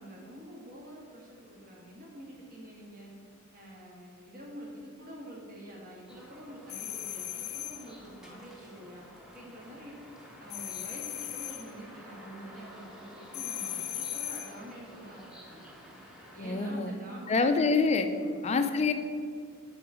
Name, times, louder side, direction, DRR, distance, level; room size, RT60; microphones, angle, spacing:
voice 1, 0.0-3.1 3.5-10.0 10.4-15.7 16.3-17.7 18.0-18.3, equal, 45° right, -3 dB, 1.6 m, -47 dB
sound 1, 6.1-16.7, equal, 5° right, 0.8 m, -51 dB
sound 2, 6.7-7.9 10.5-11.7 13.3-14.6, left 11 dB, 75° left, 0.6 m, -37 dB
voice 2, 16.4-16.9 17.3-18.1 18.4-18.9, left 4 dB, 30° left, 8 dB, 0.4 m, -26 dB
7.0 x 3.9 x 4.9 m, 2.2 s
head